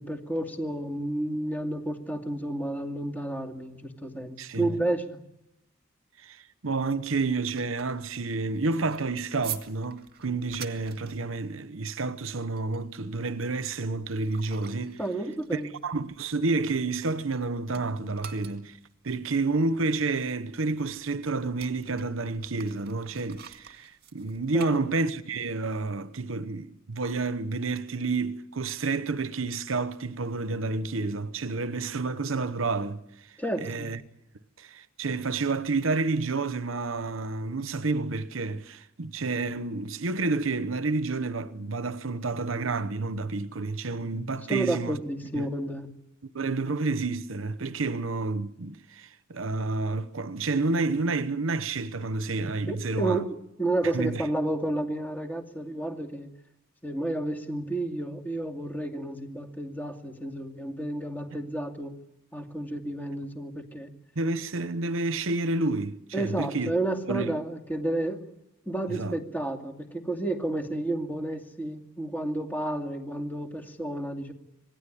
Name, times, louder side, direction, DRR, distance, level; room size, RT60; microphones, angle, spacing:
voice 1, 0.0-5.2 15.0-15.7 24.5-24.8 33.4-33.9 44.5-45.9 52.7-56.3 56.8-61.9 62.3-63.9 66.1-68.2 68.7-74.3, right 1 dB, 10° left, 2.5 m, -31 dB
voice 2, 6.2-15.0 15.5-18.8 19.0-33.3 33.6-34.0 34.6-45.0 45.4-45.5 46.2-53.2 53.9-54.2 64.2-66.7 67.1-67.3 68.9-69.2, right 3 dB, 70° right, 1.0 m, -30 dB
sound 1, 6.9-17.4 17.7-25.4, right 10 dB, 50° right, 2.1 m, -47 dB
26.5 x 18.5 x 10.0 m
head